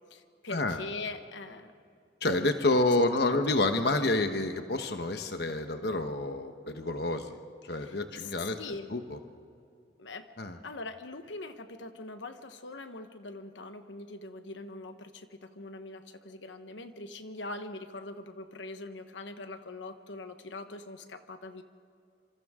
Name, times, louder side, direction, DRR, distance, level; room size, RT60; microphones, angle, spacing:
voice 1, 0.1-1.7 3.3-3.6 7.7-8.9 10.0-10.3 10.6-21.6, left 2 dB, 80° left, 8 dB, 1.2 m, -42 dB
voice 2, 2.2-8.6 8.9-9.2 10.4-10.6, left 2 dB, 60° left, 6 dB, 1.1 m, -28 dB
27.5 x 27.0 x 3.7 m, 2.5 s
head